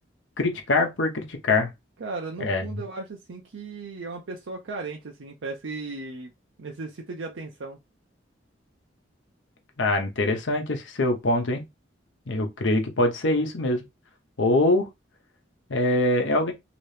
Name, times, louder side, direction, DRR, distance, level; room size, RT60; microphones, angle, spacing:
voice 1, 0.4-1.7 2.4-2.6 9.8-11.6 12.3-13.8 14.4-14.9 15.7-16.5, left 2 dB, 80° left, 0.8 m, -23 dB
voice 2, 2.0-6.3 6.6-7.8, right 3 dB, 85° right, 0.6 m, -36 dB
2.9 x 2.8 x 3.2 m
head